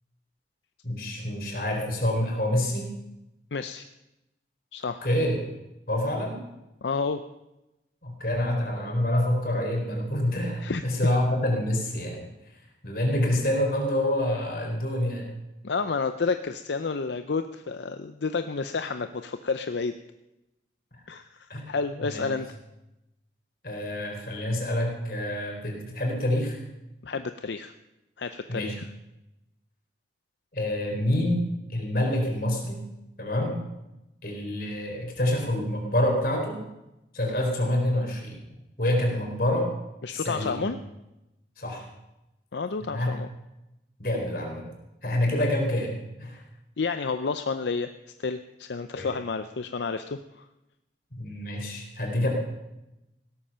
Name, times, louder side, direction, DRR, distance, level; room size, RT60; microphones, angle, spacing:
voice 1, 0.8-2.9 5.0-5.4 5.9-6.4 8.0-12.2 12.8-15.3 21.5-21.7 22.0-22.3 23.6-26.6 28.5-28.7 30.5-32.8 33.2-33.6 34.2-36.6 37.1-38.4 38.8-39.7 40.1-40.7 41.6-41.9 42.8-43.1 44.0-44.7 45.0-45.9 46.2-46.4 49.0-49.1 51.1-52.3, left 1 dB, 55° left, 1 dB, 4.1 m, -27 dB
voice 2, 3.5-3.9 4.7-5.0 6.8-7.2 10.6-10.8 15.6-19.9 21.1-22.5 27.0-27.7 28.2-28.8 40.0-40.8 42.5-43.3 45.4-45.5 46.8-47.9 48.2-50.4, left 4 dB, 80° left, 9 dB, 0.6 m, -30 dB
17.0 x 13.0 x 5.7 m, 0.94 s
head